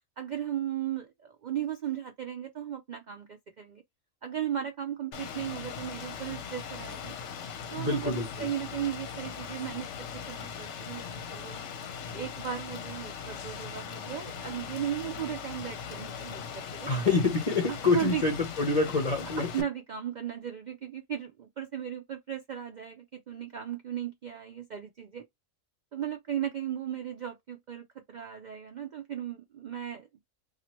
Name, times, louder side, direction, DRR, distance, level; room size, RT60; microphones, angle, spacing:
voice 1, 0.2-3.8 4.2-7.1 7.7-9.9 10.1-11.6 12.1-16.9 17.7-18.2 19.2-25.3 25.9-30.2, right 10 dB, 70° right, 0.4 m, -36 dB
Rain, 5.1-19.6, left 7 dB, 70° left, 0.9 m, -40 dB
voice 2, 7.8-8.5 16.9-19.5, left 3 dB, 40° left, 0.7 m, -27 dB
2.8 x 2.4 x 2.9 m
omnidirectional pair, 1.3 m